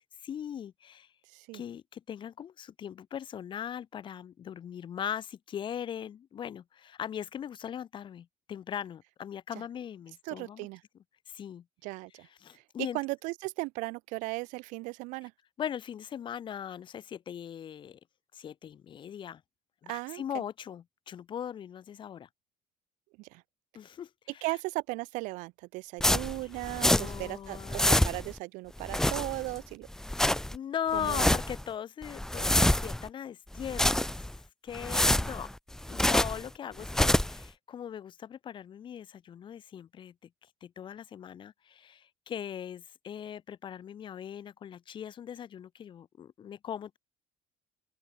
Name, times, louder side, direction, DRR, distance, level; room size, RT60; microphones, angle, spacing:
voice 1, 0.2-1.1 1.5-10.7 11.3-11.6 12.4-13.0 15.6-18.0 18.3-19.4 19.8-22.3 23.7-24.4 26.4-26.5 26.8-28.0 28.9-29.2 30.5-34.1 34.6-35.5 35.9-40.1 40.6-47.0, left 9 dB, 40° left, 3.5 m, -39 dB
voice 2, 10.3-10.8 11.8-12.3 12.5-12.6 12.9-15.3 19.9-20.4 23.2-23.4 24.4-29.9 30.9-31.3, right 24 dB, 85° right, 2.2 m, -37 dB
sound 1, 26.0-27.3 27.5-28.4 28.8-29.6 29.9-30.6 31.0-31.6 32.0-33.1 33.5-34.4 34.7-36.5 36.8-37.4, left 1 dB, 5° left, 1.0 m, -27 dB
open air
cardioid pair, 140°, 13 cm